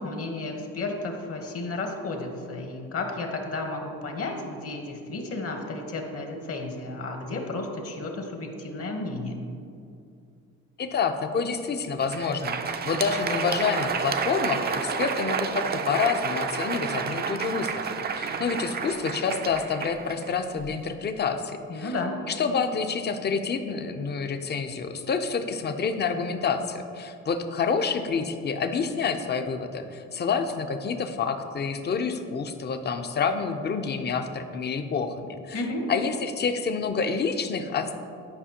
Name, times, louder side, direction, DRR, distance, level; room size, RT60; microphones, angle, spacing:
voice 1, 0.0-9.4 21.7-22.1 35.5-35.9, left 2 dB, 50° left, 3 dB, 1.1 m, -33 dB
voice 2, 10.8-12.6 12.8-21.9 22.3-35.6 35.9-37.9, left 5 dB, 35° left, 8 dB, 0.5 m, -28 dB
Crowd, 11.9-20.8, right 5 dB, 35° right, 0.4 m, -30 dB
9.9 x 5.0 x 2.9 m, 2.5 s
cardioid pair, 90°, 30 cm